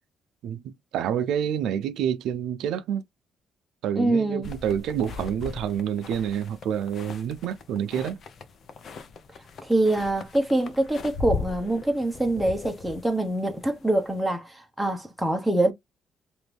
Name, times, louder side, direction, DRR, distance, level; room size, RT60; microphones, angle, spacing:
voice 1, 0.4-3.0 3.8-8.2, right 9 dB, 85° right, 0.4 m, -28 dB
voice 2, 4.0-4.5 9.6-15.7, right 1 dB, ahead, 1.0 m, -24 dB
sound 1, 4.4-14.2, left 4 dB, 55° left, 0.7 m, -39 dB
3.0 x 2.6 x 3.3 m
cardioid pair, 90°, 0 cm